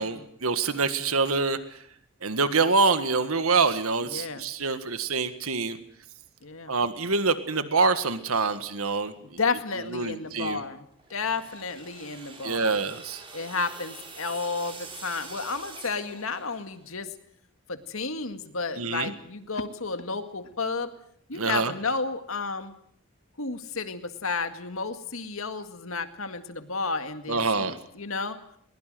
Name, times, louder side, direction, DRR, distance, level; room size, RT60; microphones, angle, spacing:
voice 1, 0.0-1.8 2.2-5.8 6.7-9.4 9.9-10.6 12.4-13.2 18.8-19.1 21.3-21.7 27.3-27.8, right 4 dB, 85° right, 11 dB, 1.7 m, -26 dB
voice 2, 4.1-4.4 6.4-6.7 9.4-10.8 11.1-12.7 13.3-17.1 17.7-20.9 21.3-22.7 23.4-28.4, left 4 dB, 75° left, 9 dB, 2.0 m, -32 dB
sound 1, 11.0-16.9, right 4 dB, 25° right, 3.5 m, -45 dB
22.0 x 21.5 x 7.7 m, 0.67 s
head